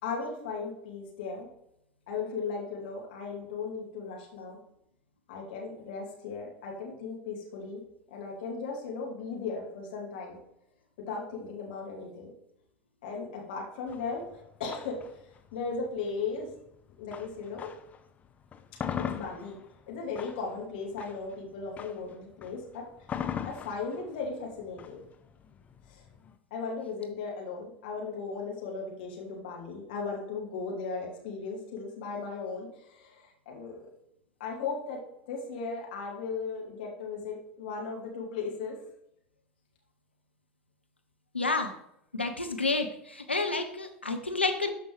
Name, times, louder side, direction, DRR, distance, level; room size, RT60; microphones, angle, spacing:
voice 1, 0.0-1.5 2.1-4.6 5.3-7.8 8.1-10.4 11.1-12.3 13.0-15.0 15.5-16.5 17.0-17.7 19.1-19.6 19.9-22.8 23.4-25.0 25.9-26.0 26.5-33.9 34.4-35.0 35.3-38.8, left 4 dB, 60° left, -1 dB, 2.5 m, -37 dB
sound 1, 13.9-18.0 18.4-26.3, left 8 dB, 25° left, 0.6 m, -40 dB
voice 2, 41.3-41.7 42.1-44.7, left 3 dB, 85° left, 6 dB, 0.7 m, -30 dB
12.5 x 5.1 x 3.4 m, 0.77 s
figure-of-eight pair, 80°, 6 cm